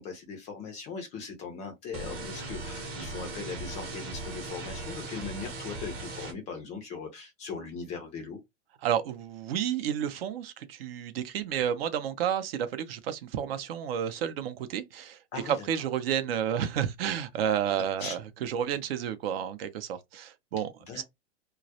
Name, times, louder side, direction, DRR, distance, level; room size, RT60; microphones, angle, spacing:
voice 1, 0.0-8.4 15.3-15.7 18.0-18.2 20.9-21.0, left 5 dB, 20° left, 0.4 m, -39 dB
sound 1, 1.9-6.3, right 2 dB, 30° right, 0.8 m, -38 dB
voice 2, 8.8-21.0, right 9 dB, 55° right, 0.6 m, -31 dB
2.2 x 2.0 x 2.7 m
hypercardioid pair, 135°, 35 cm